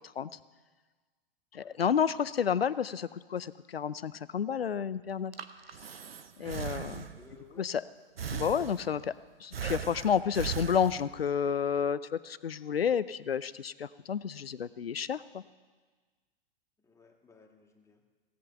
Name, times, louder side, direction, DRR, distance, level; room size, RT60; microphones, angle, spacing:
voice 1, 1.5-5.3 6.4-7.1 7.6-7.8 8.3-9.0 9.4-15.4, left 7 dB, 90° left, 17 dB, 0.6 m, -30 dB
Breathing, 5.1-7.4 8.2-9.1 9.5-11.3, right 7 dB, 85° right, 0.8 m, -39 dB
voice 2, 7.1-7.7 16.8-18.0, left 4 dB, 10° left, 1 dB, 1.9 m, -57 dB
17.0 x 8.7 x 6.9 m, 1.4 s
figure-of-eight pair, 100°, 29 cm